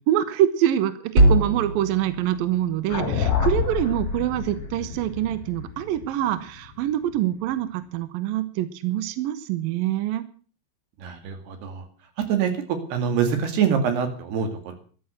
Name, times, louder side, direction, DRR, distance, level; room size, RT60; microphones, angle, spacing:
voice 1, 0.1-10.2, right 12 dB, 80° right, 12 dB, 2.1 m, -25 dB
sound 1, 1.1-5.5, right 1 dB, 25° right, 3.6 m, -25 dB
sound 2, 2.9-7.2, left 7 dB, 40° left, 3.7 m, -28 dB
voice 2, 11.0-11.8 12.3-14.7, right 7 dB, 60° right, 7 dB, 4.1 m, -25 dB
13.5 x 11.0 x 7.6 m, 0.42 s
omnidirectional pair, 5.7 m